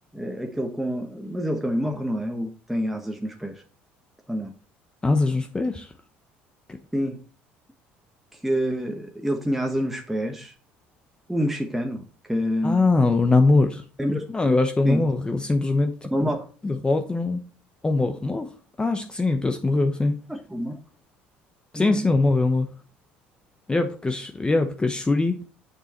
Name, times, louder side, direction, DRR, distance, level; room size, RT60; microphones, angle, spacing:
voice 1, 0.1-3.6 4.3-4.5 6.9-7.2 8.3-10.5 11.3-12.8 14.0-14.2 14.8-15.0 16.1-16.4 20.3-20.8 21.7-22.0, equal, 5° right, 2 dB, 1.3 m, -27 dB
voice 2, 5.0-5.9 12.6-13.8 14.3-16.3 16.6-17.4 17.8-18.5 18.8-20.1 21.7-22.7 23.7-25.4, left 3 dB, 20° left, 6 dB, 1.0 m, -22 dB
6.8 x 6.5 x 4.4 m, 0.38 s
supercardioid pair, 80°, 5 cm